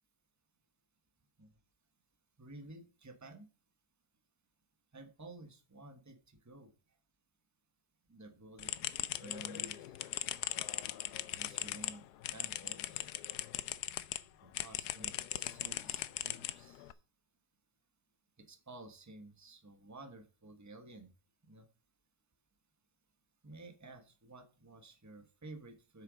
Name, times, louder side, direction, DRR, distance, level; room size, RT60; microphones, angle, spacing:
voice 1, 2.4-3.5 4.9-6.7 8.1-8.7 9.1-10.0 10.9-11.0 11.3-13.2 14.4-16.9 18.4-21.1 21.5-21.7 23.4-26.0, right 2 dB, 10° right, 7 dB, 1.1 m, -53 dB
sound 1, 8.6-14.2 14.5-16.9, left 13 dB, 75° left, 1.1 m, -39 dB
7.6 x 6.6 x 5.1 m, 0.34 s
omnidirectional pair, 1.8 m